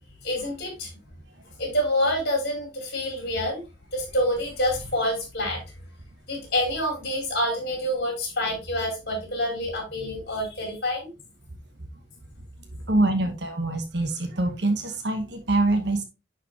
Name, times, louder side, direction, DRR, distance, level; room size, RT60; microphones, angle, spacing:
voice 1, 0.2-0.9 1.6-3.6 3.9-5.6 6.3-11.1, left 1 dB, 50° left, -1 dB, 5.1 m, -27 dB
voice 2, 12.9-16.0, right 2 dB, 60° right, 5 dB, 1.1 m, -24 dB
10.5 x 4.9 x 2.9 m, 0.28 s
head